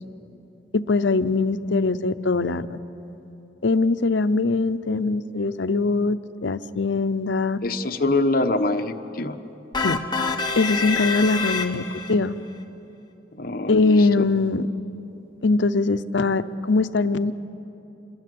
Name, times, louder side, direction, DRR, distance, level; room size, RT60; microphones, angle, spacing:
voice 1, 0.7-2.8 3.6-7.6 9.8-10.0 10.6-12.3 13.7-14.7 15.4-17.3, left 3 dB, 90° left, 12 dB, 0.7 m, -22 dB
voice 2, 7.6-9.4 13.3-14.2, left 2 dB, 55° left, 7 dB, 1.1 m, -24 dB
sound 1, 9.7-12.1, left 4 dB, 25° left, 1.3 m, -26 dB
27.0 x 22.5 x 7.8 m, 3.0 s
head